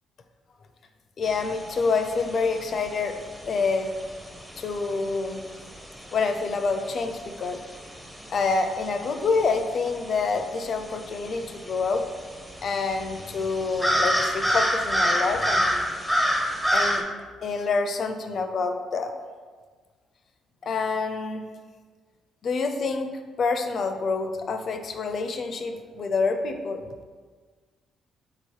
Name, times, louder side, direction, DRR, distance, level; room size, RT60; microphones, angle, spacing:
voice 1, 1.2-3.2 3.5-3.9 4.6-5.5 6.1-7.6 8.3-12.0 12.6-15.9 16.7-17.1 17.4-19.1 20.6-21.5 22.4-23.1 23.4-26.8, left 4 dB, 55° left, 6 dB, 0.4 m, -27 dB
sound 1, 1.2-17.0, equal, 5° right, 0.5 m, -30 dB
3.8 x 2.8 x 4.7 m, 1.5 s
cardioid pair, 90°, 0 cm